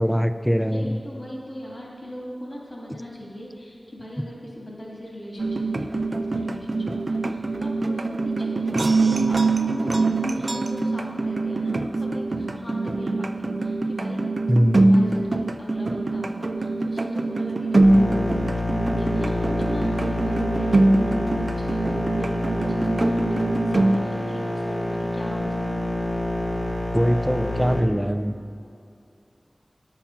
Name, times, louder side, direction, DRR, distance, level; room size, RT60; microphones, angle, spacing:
voice 1, 0.0-1.0 14.5-15.0 26.9-28.3, equal, ahead, 8 dB, 0.5 m, -22 dB
voice 2, 0.7-8.8 9.3-14.3 14.7-17.9 18.9-21.9 22.2-25.8, equal, 60° left, -4 dB, 2.8 m, -39 dB
sound 1, 5.4-24.0, right 2 dB, 55° right, 0.4 m, -23 dB
sound 2, 17.8-27.8, left 1 dB, 40° left, 2.0 m, -27 dB
10.5 x 7.3 x 5.7 m, 2.4 s
wide cardioid pair, 70°, 0 cm